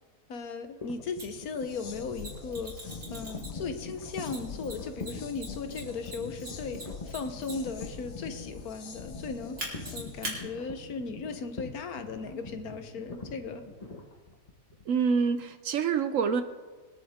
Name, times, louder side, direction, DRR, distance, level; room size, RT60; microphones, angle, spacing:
voice 1, 0.3-6.8 7.0-9.6 9.9-13.6, left 4 dB, 80° left, 8 dB, 1.5 m, -37 dB
sound 1, 0.8-14.9, left 3 dB, 25° left, 1.1 m, -44 dB
Mechanisms, 1.2-1.3 2.2-3.7 4.3-7.8 9.6-10.4, right 1 dB, 90° right, 3.4 m, -40 dB
sound 2, 1.4-10.5, left 6 dB, 50° left, 1.1 m, -46 dB
voice 2, 14.9-16.4, right 6 dB, 65° right, 10 dB, 1.0 m, -26 dB
21.5 x 10.0 x 3.6 m, 1.4 s
omnidirectional pair, 1.6 m